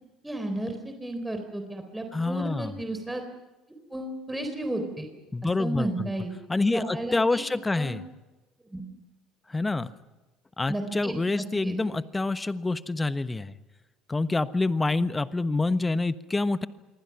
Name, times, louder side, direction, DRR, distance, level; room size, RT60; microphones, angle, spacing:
voice 1, 0.2-3.2 3.9-5.1 5.6-6.3 6.7-7.4 7.7-8.0 8.7-8.8 10.7-11.2 11.6-11.8, right 1 dB, 10° right, 5 dB, 3.8 m, -33 dB
voice 2, 2.1-2.7 5.3-6.1 6.5-8.0 9.5-9.9 10.6-13.6 14.1-16.7, left 3 dB, 15° left, 14 dB, 1.2 m, -27 dB
27.0 x 23.5 x 6.0 m, 1.1 s
hypercardioid pair, 60°, 0 cm